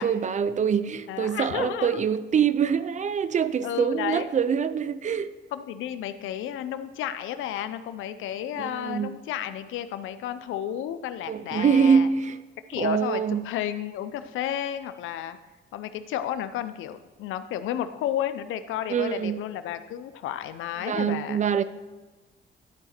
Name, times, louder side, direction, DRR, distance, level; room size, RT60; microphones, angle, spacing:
voice 1, 0.0-5.4 8.6-9.1 11.3-12.4 12.8-13.5 18.9-19.4 20.8-21.6, right 7 dB, 40° right, 0.5 m, -24 dB
voice 2, 1.1-2.0 3.6-4.3 5.5-12.1 12.7-15.4 15.7-21.4, left 11 dB, 85° left, 0.6 m, -32 dB
12.0 x 4.9 x 4.3 m
cardioid pair, 90°, 20 cm